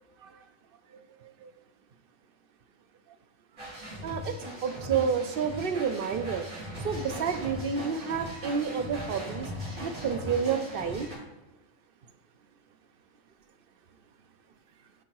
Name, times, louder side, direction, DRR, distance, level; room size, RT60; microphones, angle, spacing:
voice 1, 0.9-1.5 4.0-4.4 4.6-6.5 6.8-9.5 9.8-11.1, right 6 dB, 55° right, 9 dB, 0.6 m, -30 dB
sound 1, 3.6-11.2, equal, 90° right, 3.5 m, -39 dB
9.0 x 3.8 x 4.6 m, 1.0 s
omnidirectional pair, 1.4 m